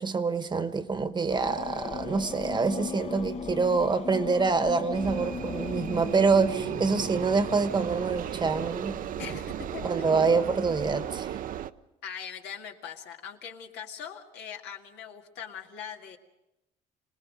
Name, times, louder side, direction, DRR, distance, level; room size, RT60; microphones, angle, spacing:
voice 1, 0.0-9.0 9.8-11.4, right 4 dB, 25° right, 1.1 m, -26 dB
sound 1, 1.3-9.9 10.6-11.2, left 5 dB, 40° left, 0.9 m, -39 dB
sound 2, 4.9-11.7, right 10 dB, 55° right, 0.6 m, -35 dB
voice 2, 9.2-10.2 12.0-16.2, left 8 dB, 85° left, 2.1 m, -41 dB
26.0 x 19.0 x 5.4 m
cardioid pair, 110°, 17 cm